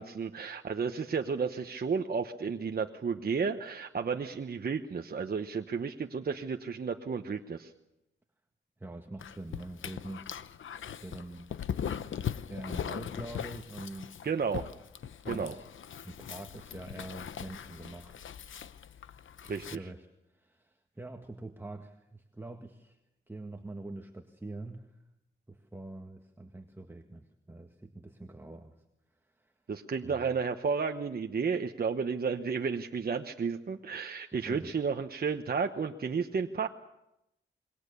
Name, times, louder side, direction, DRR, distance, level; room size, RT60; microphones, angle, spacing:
voice 1, 0.0-7.7 14.2-14.7 15.3-15.5 19.5-19.9 29.7-36.7, right 5 dB, 50° right, 5 dB, 1.1 m, -32 dB
voice 2, 8.8-10.5 11.0-11.6 12.5-14.2 15.2-15.7 16.0-18.3 19.4-23.0 23.3-25.0 25.5-28.7 29.2-29.5 30.0-30.4 34.4-34.7, right 2 dB, 10° right, 3 dB, 1.8 m, -45 dB
Dog, 9.2-19.8, left 8 dB, 80° left, 0.8 m, -40 dB
27.0 x 22.5 x 6.9 m, 0.88 s
wide cardioid pair, 95°, 20 cm